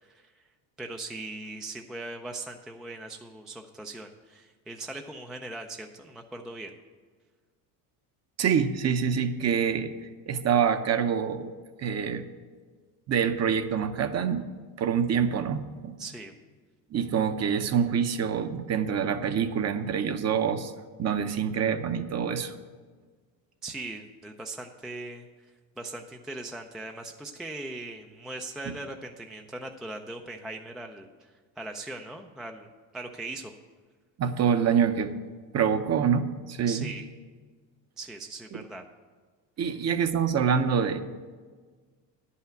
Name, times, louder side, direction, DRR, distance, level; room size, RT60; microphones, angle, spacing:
voice 1, 0.0-0.4 0.8-6.7 16.0-16.3 23.6-25.3 25.8-33.5 36.6-37.0 38.0-38.8, right 2 dB, ahead, 3 dB, 0.3 m, -40 dB
voice 2, 8.4-9.9 10.3-11.5 11.8-12.3 13.1-14.4 14.8-15.9 16.9-20.7 21.0-22.5 34.2-35.1 35.5-36.9 39.6-41.0, right 7 dB, 35° right, 10 dB, 0.7 m, -26 dB
10.0 x 5.7 x 7.7 m, 1.5 s
supercardioid pair, 110°, 47 cm